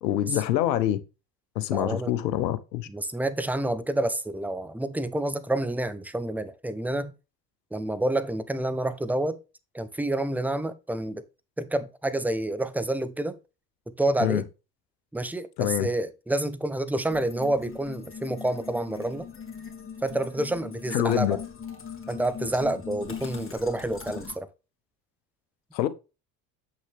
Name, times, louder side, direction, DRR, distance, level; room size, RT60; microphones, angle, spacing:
voice 1, 0.0-1.0 1.5-2.9 14.2-14.4 15.6-15.9 20.9-21.4 25.7-25.9, left 12 dB, 85° left, 1.0 m, -25 dB
voice 2, 1.7-2.1 2.9-7.1 7.7-9.4 9.7-11.2 11.6-13.4 14.0-14.4 15.1-19.3 20.0-21.4 22.1-24.5, right 1 dB, 5° right, 0.9 m, -28 dB
sound 1, 17.1-24.3, left 7 dB, 25° left, 2.8 m, -40 dB
7.9 x 6.3 x 3.5 m
hypercardioid pair, 65°, 50 cm